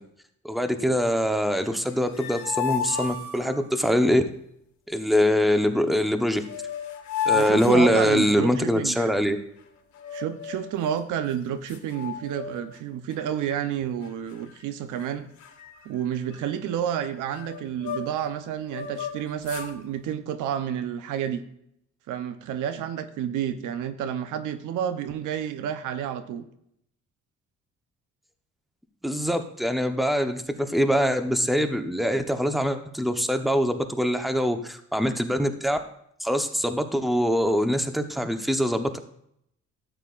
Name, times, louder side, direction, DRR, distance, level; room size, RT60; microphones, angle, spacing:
voice 1, 0.4-4.2 4.9-6.4 7.3-9.4 29.0-35.8 36.2-39.0, equal, ahead, 7 dB, 1.0 m, -23 dB
sound 1, 1.8-3.8 6.0-6.1 6.4-8.6 9.9-10.8 11.3-11.4 11.7-12.8 13.1-13.4 14.0-14.6 14.9-15.1 15.4-18.3 18.7-19.7, left 7 dB, 70° left, 2.0 m, -33 dB
voice 2, 7.3-9.1 10.1-15.3 15.8-21.4 22.1-26.4, right 9 dB, 90° right, 10 dB, 0.9 m, -30 dB
13.0 x 9.1 x 2.6 m, 0.73 s
cardioid pair, 90°, 30 cm